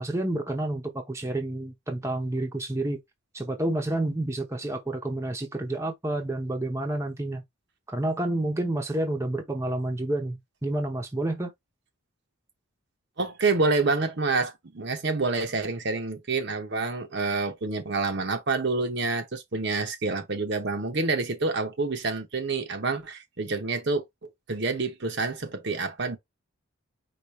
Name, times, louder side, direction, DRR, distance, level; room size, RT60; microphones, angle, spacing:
voice 1, 0.0-3.0 3.3-7.4 7.9-11.5, right 1 dB, 15° right, 0.8 m, -29 dB
voice 2, 13.2-26.2, right 3 dB, 50° right, 0.8 m, -28 dB
4.9 x 2.5 x 4.1 m
head